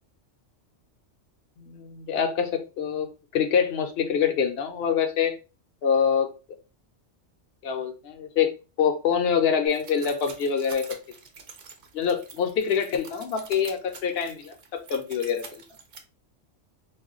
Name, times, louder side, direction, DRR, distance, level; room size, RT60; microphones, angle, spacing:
voice 1, 1.6-3.1 3.3-5.3 5.8-6.3 7.6-8.5 8.8-11.0 11.9-15.6, left 7 dB, 60° left, 0.8 m, -25 dB
sound 1, 9.7-16.0, right 5 dB, 55° right, 0.6 m, -46 dB
2.3 x 2.2 x 3.6 m
omnidirectional pair, 1.3 m